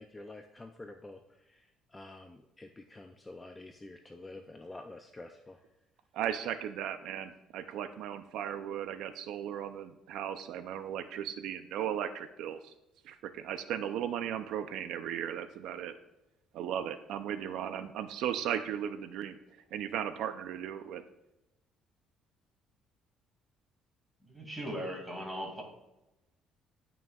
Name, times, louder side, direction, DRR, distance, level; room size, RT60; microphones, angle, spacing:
voice 1, 0.0-5.6, left 2 dB, 10° left, 4 dB, 0.4 m, -49 dB
voice 2, 6.1-12.7 13.0-16.0 16.5-19.4 19.7-21.0, right 9 dB, 70° right, 10 dB, 0.5 m, -36 dB
voice 3, 24.2-25.6, equal, 5° right, -1 dB, 2.4 m, -39 dB
18.0 x 6.1 x 2.4 m, 0.93 s
cardioid pair, 160°, 0 cm